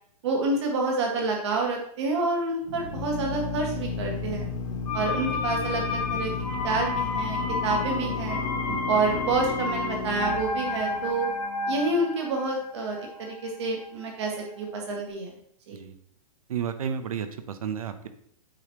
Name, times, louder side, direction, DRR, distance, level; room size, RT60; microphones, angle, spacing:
voice 1, 0.2-4.5 4.9-8.4 8.9-11.3 11.7-15.3 15.7-15.8, right 3 dB, 45° right, 0 dB, 1.8 m, -28 dB
Drill, 2.6-11.3, left 5 dB, 55° left, 1.2 m, -33 dB
sound 1, 4.9-14.6 14.9-15.0, left 3 dB, 90° left, 1.9 m, -32 dB
voice 2, 16.5-18.1, right 8 dB, 65° right, 10 dB, 0.8 m, -32 dB
8.7 x 5.0 x 3.1 m, 0.66 s
hypercardioid pair, 175°, 20 cm